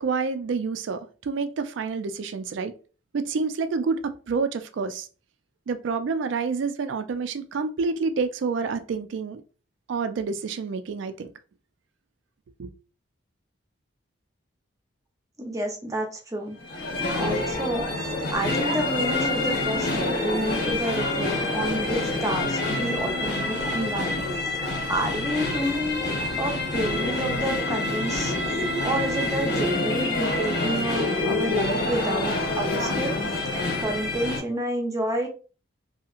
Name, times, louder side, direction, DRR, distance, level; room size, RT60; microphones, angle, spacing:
voice 1, 0.0-2.7 3.1-5.1 5.7-9.4 9.9-11.3 12.6-12.7, right 4 dB, 70° right, 0.3 m, -28 dB
voice 2, 15.4-16.6 17.1-17.9 18.3-24.2 24.5-28.3 28.8-33.2 33.8-35.3, right 1 dB, 15° right, 0.5 m, -29 dB
sound 1, 16.6-34.4, left 2 dB, 55° left, 0.9 m, -27 dB
2.8 x 2.7 x 2.4 m
head